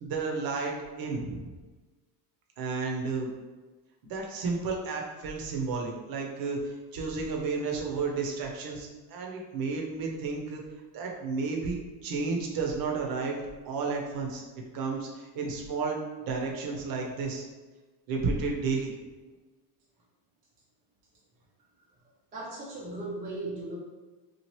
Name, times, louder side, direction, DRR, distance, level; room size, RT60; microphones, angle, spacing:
voice 1, 0.0-1.5 2.6-3.3 4.1-10.6 10.9-14.4 14.7-17.4 18.1-18.9, right 4 dB, 50° right, 0 dB, 0.7 m, -32 dB
voice 2, 22.3-23.8, right 2 dB, 20° right, -6 dB, 0.5 m, -37 dB
3.0 x 2.4 x 3.0 m, 1.3 s
cardioid pair, 125°, 47 cm